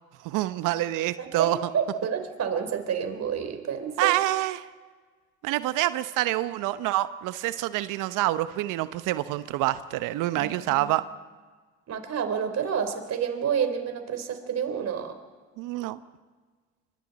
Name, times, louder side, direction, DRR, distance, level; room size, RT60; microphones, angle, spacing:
voice 1, 0.2-1.7 4.0-4.7 5.4-11.0 15.6-16.0, right 16 dB, 65° right, 13 dB, 1.0 m, -27 dB
voice 2, 1.2-4.2 10.4-10.9 11.9-15.1, right 7 dB, 50° right, 7 dB, 4.0 m, -29 dB
29.5 x 25.5 x 4.2 m, 1.4 s
hypercardioid pair, 65°, 33 cm